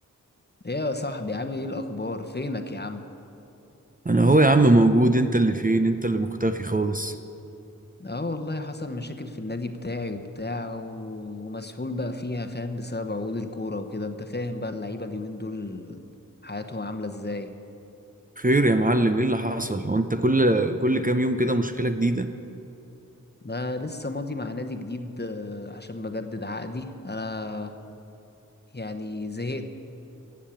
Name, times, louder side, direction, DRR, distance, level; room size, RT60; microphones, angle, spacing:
voice 1, 0.6-3.1 8.0-16.0 16.4-17.5 23.4-27.7 28.7-29.6, left 2 dB, 30° left, 6 dB, 1.0 m, -32 dB
voice 2, 4.0-7.1 18.4-22.3, right 2 dB, 25° right, 8 dB, 0.6 m, -21 dB
16.5 x 7.3 x 8.5 m, 2.8 s
wide cardioid pair, 45°, 32 cm